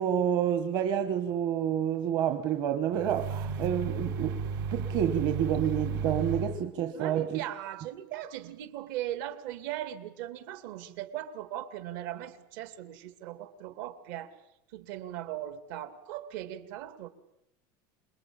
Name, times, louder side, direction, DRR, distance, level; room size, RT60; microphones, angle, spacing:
voice 1, 0.0-4.4 4.7-7.4, right 9 dB, 40° right, 8 dB, 1.4 m, -29 dB
sound 1, 2.9-6.6, right 5 dB, 80° right, 5.4 m, -33 dB
voice 2, 6.9-14.4 14.7-17.1, right 12 dB, 65° right, 11 dB, 2.6 m, -38 dB
27.5 x 21.5 x 8.9 m, 0.81 s
cardioid pair, 175°, 11 cm